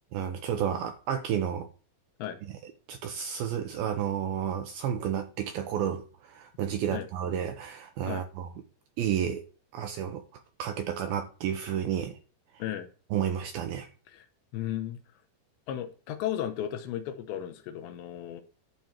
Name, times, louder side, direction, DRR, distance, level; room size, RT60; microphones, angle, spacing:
voice 1, 0.1-1.7 2.9-8.5 9.0-9.4 9.7-10.2 10.6-12.2 13.1-13.9, right 9 dB, 75° right, 2.2 m, -31 dB
voice 2, 14.5-15.0 15.7-18.4, left 11 dB, 80° left, 3.1 m, -34 dB
11.5 x 4.4 x 7.2 m
omnidirectional pair, 5.3 m